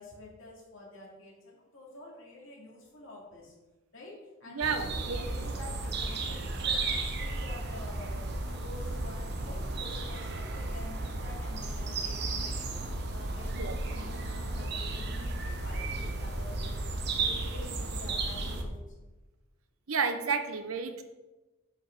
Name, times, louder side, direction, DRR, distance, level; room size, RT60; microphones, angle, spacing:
voice 1, 0.0-3.5 3.9-16.8 17.2-18.8, left 2 dB, 70° left, -3 dB, 2.7 m, -48 dB
voice 2, 4.5-5.3 13.5-13.8 19.9-21.0, right 5 dB, 90° right, 8 dB, 0.9 m, -31 dB
sound 1, 4.6-18.6, right 2 dB, 50° right, 1.0 m, -34 dB
7.1 x 5.6 x 5.9 m, 1.1 s
head